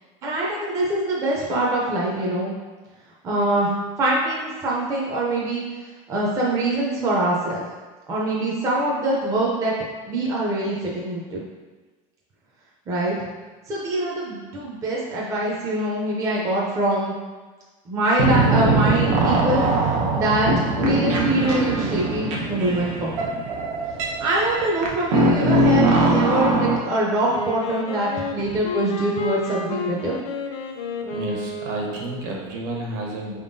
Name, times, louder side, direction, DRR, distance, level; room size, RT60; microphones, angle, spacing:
voice 1, 0.2-2.5 3.2-3.7 4.0-5.6 6.1-7.6 8.1-9.7 10.1-11.4 12.9-13.1 13.7-17.2 17.9-19.7 20.1-23.3 24.2-30.2, right 1 dB, 20° right, -4 dB, 0.5 m, -24 dB
sound 1, 18.2-26.8, right 2 dB, 85° right, 0.9 m, -21 dB
Wind instrument woodwind instrument, 27.3-32.3, left 2 dB, 45° left, 0.5 m, -31 dB
voice 2, 31.1-33.4, right 1 dB, 55° right, -1 dB, 1.0 m, -31 dB
5.0 x 3.6 x 2.6 m, 1.3 s
cardioid pair, 170°, 16 cm